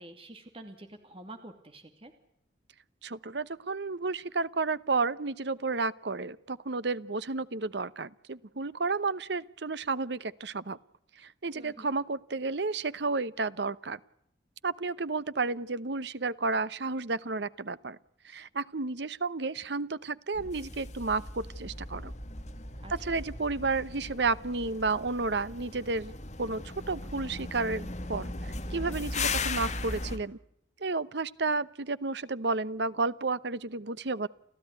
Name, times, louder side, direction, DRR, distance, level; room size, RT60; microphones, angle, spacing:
voice 1, 0.0-2.1 11.5-11.9 22.8-22.9, right 1 dB, 30° right, 6 dB, 2.5 m, -47 dB
voice 2, 3.0-10.8 11.2-14.0 14.6-18.0 18.2-22.1 22.9-26.1 26.4-30.4 30.8-34.3, right 3 dB, 65° right, 17 dB, 0.9 m, -32 dB
sound 1, 20.3-30.2, left 3 dB, 40° left, 2.3 m, -37 dB
30.0 x 14.0 x 9.5 m, 0.73 s
head